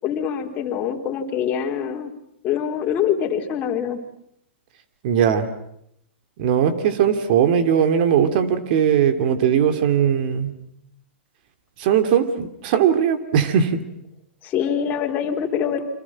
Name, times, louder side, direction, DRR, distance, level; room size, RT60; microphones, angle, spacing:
voice 1, 0.0-2.1 2.4-4.0 14.4-15.9, left 8 dB, 30° left, 2 dB, 4.1 m, -24 dB
voice 2, 5.0-5.5 6.4-10.5 11.8-13.8, right 8 dB, 50° right, 9 dB, 3.1 m, -19 dB
30.0 x 26.0 x 6.2 m, 0.74 s
hypercardioid pair, 130°, 6 cm